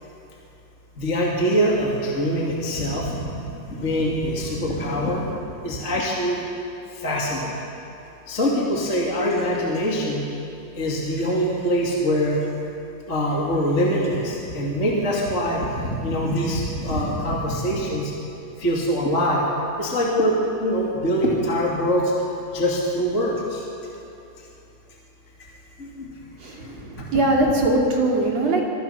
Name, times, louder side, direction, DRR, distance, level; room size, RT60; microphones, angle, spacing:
voice 1, 1.0-5.3 5.6-6.4 6.9-7.5 8.3-10.2 10.7-12.4 13.1-18.1 18.6-19.4 19.8-22.1 22.5-23.6 25.8-26.1 26.6-27.1, equal, 20° left, -3 dB, 2.4 m, -24 dB
voice 2, 26.4-28.6, right 2 dB, 45° right, -1 dB, 3.4 m, -21 dB
25.0 x 23.0 x 5.9 m, 2.8 s
omnidirectional pair, 4.3 m